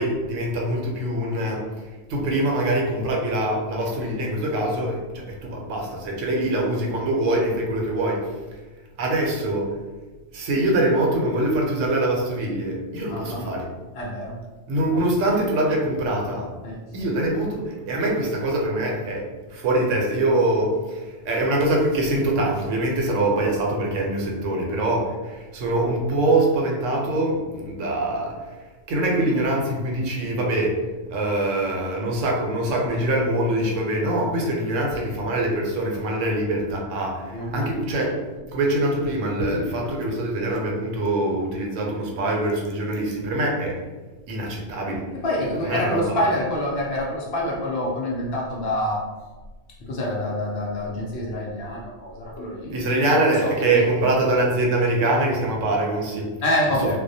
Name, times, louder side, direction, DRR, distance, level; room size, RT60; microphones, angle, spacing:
voice 1, 0.0-1.6 2.1-8.3 9.0-9.7 10.3-13.7 14.7-16.5 16.9-28.6 28.9-30.8 31.1-38.2 38.5-43.8 44.3-45.0 45.6-46.2 52.7-56.3 56.7-57.0, right 1 dB, 80° right, -1 dB, 0.9 m, -24 dB
voice 2, 13.1-13.4 13.9-14.3 14.9-15.0 16.6-16.8 37.3-37.7 45.2-49.0 49.9-52.8 53.4-53.8 56.4-57.0, left 1 dB, 65° left, -3 dB, 0.7 m, -26 dB
2.3 x 2.1 x 2.6 m, 1.2 s
omnidirectional pair, 1.3 m